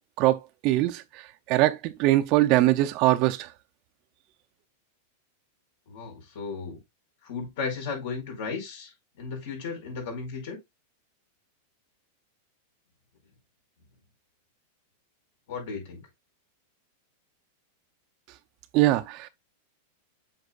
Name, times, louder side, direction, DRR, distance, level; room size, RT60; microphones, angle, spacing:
voice 1, 0.2-3.5 18.7-19.3, right 16 dB, 40° right, 0.5 m, -23 dB
voice 2, 5.9-6.8 7.2-8.9 9.2-10.6 15.5-16.0, left 5 dB, 65° left, 4.8 m, -35 dB
8.0 x 5.9 x 2.4 m
supercardioid pair, 150°, 0 cm